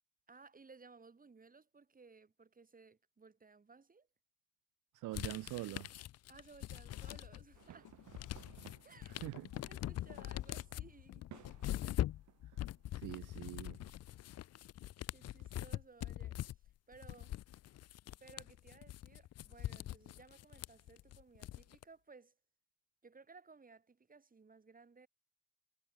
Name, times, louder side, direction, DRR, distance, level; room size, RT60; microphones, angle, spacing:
voice 1, 0.3-4.1 6.3-7.9 8.8-11.3 15.1-16.6 16.9-17.4 18.2-22.3 23.0-25.1, right 4 dB, 30° right, 3.7 m, -60 dB
voice 2, 4.9-5.9 9.1-9.5 12.9-13.8, right 18 dB, 90° right, 0.9 m, -44 dB
sound 1, 5.1-7.6 7.9-21.8, left 13 dB, 55° left, 0.5 m, -43 dB
Walk footsteps, 6.7-8.9 9.3-9.7 10.1-10.7 11.3-11.9, left 14 dB, 85° left, 3.3 m, -58 dB
sound 2, 7.5-12.9, right 12 dB, 70° right, 2.2 m, -60 dB
cardioid pair, 90°, 30 cm